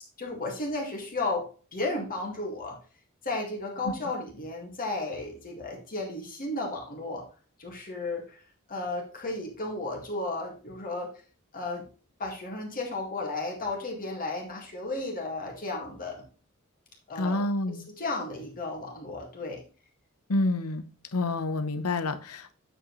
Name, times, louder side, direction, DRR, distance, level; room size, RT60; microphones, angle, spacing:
voice 1, 0.2-2.8 3.2-7.3 7.6-8.4 8.7-11.1 11.5-11.9 12.2-16.3 17.1-19.6, left 2 dB, 40° left, 2.0 m, -34 dB
voice 2, 17.2-17.8 20.3-20.9 21.1-22.5, left 2 dB, 80° left, 0.8 m, -28 dB
8.6 x 5.2 x 3.1 m
head